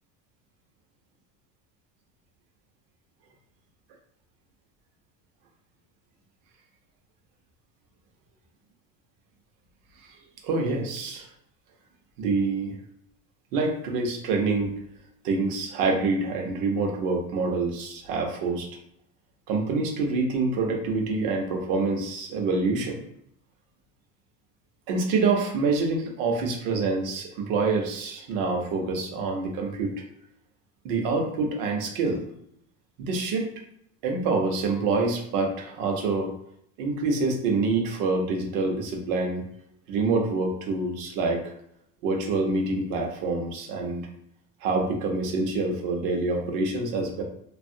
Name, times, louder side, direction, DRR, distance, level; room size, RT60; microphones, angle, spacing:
voice 1, 10.4-11.3 12.2-12.7 13.5-14.7 15.2-18.7 19.5-23.0 24.9-29.9 30.8-32.2 33.0-33.5 34.0-36.3 36.8-39.4 39.9-41.5 42.0-44.0 44.6-47.2, right 3 dB, 55° right, 1 dB, 0.9 m, -26 dB
2.6 x 2.4 x 2.6 m, 0.72 s
supercardioid pair, 150°, 43 cm